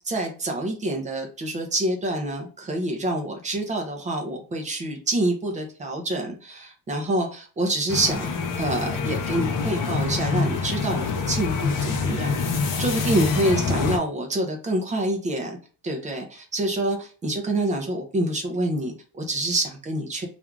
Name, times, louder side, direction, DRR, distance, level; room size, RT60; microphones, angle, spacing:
voice 1, 0.1-8.3 8.6-12.4 12.8-15.6 15.8-20.3, right 1 dB, 20° right, 2 dB, 0.3 m, -27 dB
sound 1, 7.9-14.0, left 5 dB, 50° left, 0.5 m, -26 dB
2.5 x 2.3 x 3.0 m, 0.38 s
cardioid pair, 180°, 43 cm